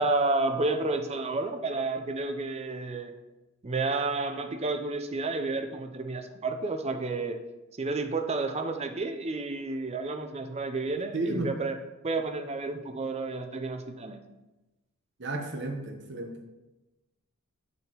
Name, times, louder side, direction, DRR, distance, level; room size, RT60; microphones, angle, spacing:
voice 1, 0.0-3.1 3.6-7.4 7.8-11.8 12.0-14.2, right 3 dB, 30° right, 7 dB, 0.6 m, -30 dB
voice 2, 11.1-11.5 15.2-16.5, right 2 dB, 60° right, 3 dB, 1.1 m, -32 dB
8.4 x 6.7 x 3.0 m, 1.0 s
head